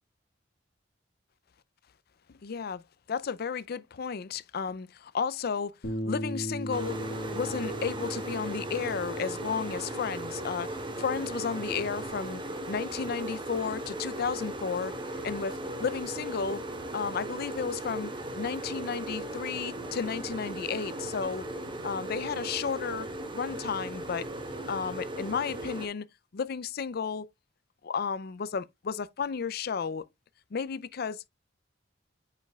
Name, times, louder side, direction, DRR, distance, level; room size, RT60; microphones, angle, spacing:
voice 1, 2.3-2.8 3.1-5.7 6.0-7.0 7.3-12.4 12.7-14.9 15.2-16.6 16.9-21.4 21.8-23.1 23.3-24.3 24.7-26.1 26.3-27.3 27.8-30.0 30.5-31.2, left 6 dB, 55° left, 0.5 m, -33 dB
Bass guitar, 5.8-12.1, equal, 90° left, 1.8 m, -39 dB
sound 1, 6.7-25.9, right 1 dB, 25° right, 1.1 m, -37 dB
9.0 x 5.1 x 2.3 m
head